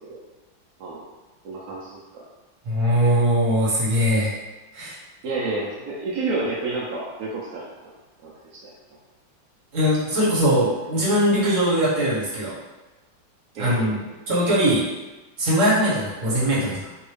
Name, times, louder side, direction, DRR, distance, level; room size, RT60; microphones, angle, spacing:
voice 1, 1.4-2.2 5.2-7.7 8.2-8.7 13.6-14.0, right 3 dB, 75° right, -6 dB, 0.9 m, -30 dB
voice 2, 2.6-4.3 4.7-4.9 9.7-12.5 13.6-14.0 14.3-14.8 15.4-16.8, equal, 45° right, -8 dB, 1.3 m, -21 dB
3.0 x 2.7 x 3.2 m, 1.2 s
omnidirectional pair, 2.1 m